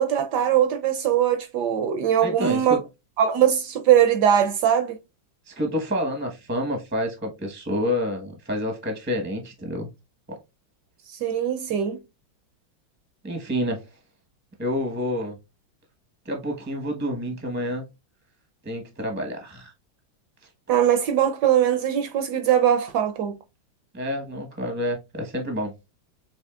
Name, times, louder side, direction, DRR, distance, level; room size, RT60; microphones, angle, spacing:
voice 1, 0.0-2.8 3.2-5.0 11.2-12.0 20.7-23.3, right 9 dB, 70° right, 1.1 m, -21 dB
voice 2, 2.2-2.8 5.5-9.9 10.3-10.4 13.2-13.8 14.6-15.4 16.2-17.8 18.6-19.7 23.9-25.7, equal, 15° right, 0.4 m, -28 dB
7.0 x 3.1 x 2.3 m
omnidirectional pair, 2.2 m